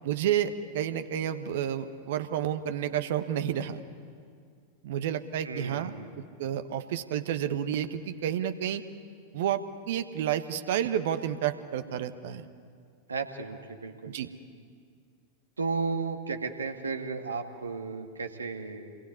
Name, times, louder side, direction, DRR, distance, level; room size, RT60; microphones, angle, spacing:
voice 1, 0.0-3.8 4.8-5.9 6.4-8.8 9.3-9.6 9.9-12.4 14.1-14.3, right 10 dB, 55° right, 10 dB, 1.3 m, -30 dB
voice 2, 5.4-6.3 13.1-14.2 15.6-19.0, right 4 dB, 75° right, 5 dB, 2.1 m, -34 dB
28.0 x 21.5 x 9.7 m, 2.2 s
figure-of-eight pair, 90°, 0 cm